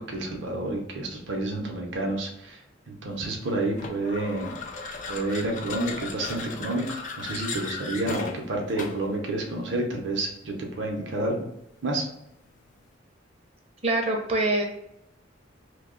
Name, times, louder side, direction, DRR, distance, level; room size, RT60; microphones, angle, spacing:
voice 1, 0.0-2.6 2.9-4.6 5.1-6.8 7.2-11.4 11.8-12.1, right 2 dB, 65° right, 0 dB, 0.7 m, -29 dB
sound 1, 3.7-9.1, left 4 dB, 40° left, 0.4 m, -36 dB
voice 2, 13.8-14.6, right 2 dB, 30° right, 2 dB, 0.6 m, -24 dB
2.7 x 2.2 x 3.7 m, 0.82 s
head